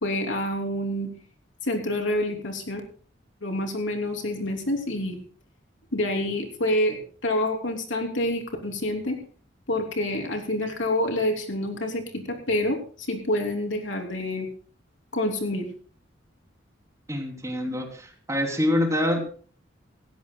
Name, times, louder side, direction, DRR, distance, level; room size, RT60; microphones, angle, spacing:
voice 1, 0.0-1.1 1.6-2.8 3.4-5.2 5.9-9.2 9.7-14.5 15.1-15.7, left 1 dB, 90° left, 3 dB, 3.1 m, -27 dB
voice 2, 17.1-19.2, left 1 dB, 15° right, 2 dB, 2.9 m, -26 dB
18.5 x 15.5 x 2.3 m, 0.42 s
head